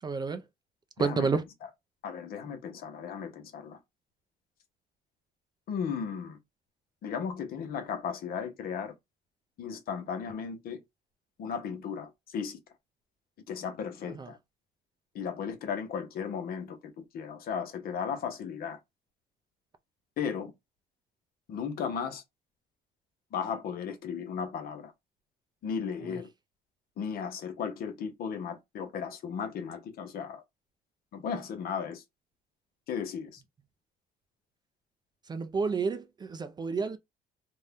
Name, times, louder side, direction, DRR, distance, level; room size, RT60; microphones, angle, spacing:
voice 1, 0.0-0.4 1.0-1.4 14.0-14.3 26.0-26.2 35.2-37.0, right 4 dB, 25° right, 0.4 m, -30 dB
voice 2, 2.0-3.8 5.7-6.4 7.0-8.9 9.6-10.8 11.4-12.6 13.5-14.4 15.1-18.8 20.2-20.5 21.5-22.2 23.3-24.9 25.6-26.3 27.0-30.4 31.1-32.0 32.9-33.4, left 7 dB, 60° left, 0.8 m, -35 dB
2.6 x 2.2 x 3.4 m
cardioid pair, 110°, 17 cm